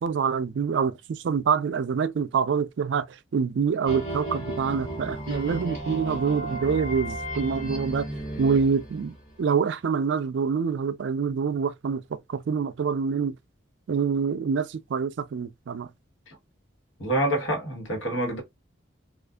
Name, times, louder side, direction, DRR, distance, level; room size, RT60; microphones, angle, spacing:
voice 1, 0.0-8.1 8.4-13.4 13.9-15.9, right 6 dB, 65° right, 0.3 m, -26 dB
sound 1, 3.9-9.4, right 1 dB, 35° left, 1.2 m, -34 dB
voice 2, 17.0-18.4, right 1 dB, 80° left, 1.4 m, -27 dB
2.5 x 2.4 x 2.2 m
head